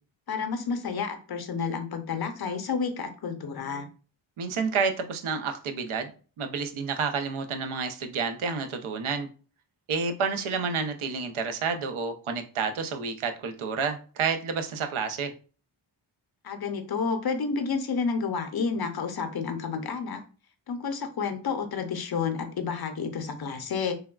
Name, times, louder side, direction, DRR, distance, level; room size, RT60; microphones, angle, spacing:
voice 1, 0.3-3.9 16.4-20.2 20.7-23.9, left 5 dB, 50° left, 7 dB, 0.6 m, -30 dB
voice 2, 4.4-6.1 6.4-9.3 9.9-15.3, right 5 dB, 75° right, 6 dB, 0.6 m, -29 dB
3.3 x 2.3 x 2.2 m, 0.37 s
wide cardioid pair, 70°, 49 cm